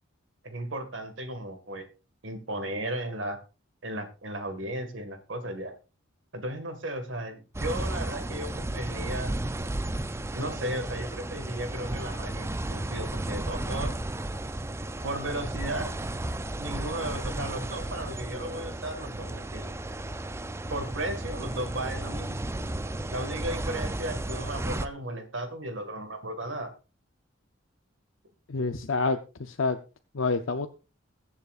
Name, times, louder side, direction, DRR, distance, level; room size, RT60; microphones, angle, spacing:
voice 1, 0.4-1.9 2.2-3.4 3.8-5.7 6.3-9.3 10.3-13.9 15.0-15.9 16.6-19.7 20.7-22.4 23.1-26.7, right 1 dB, 75° right, 8 dB, 1.9 m, -35 dB
sound 1, 7.5-24.9, right 1 dB, 15° right, 0.4 m, -34 dB
voice 2, 28.5-29.8 30.1-30.7, left 3 dB, 90° left, 7 dB, 0.7 m, -28 dB
21.5 x 7.3 x 2.5 m, 0.31 s
head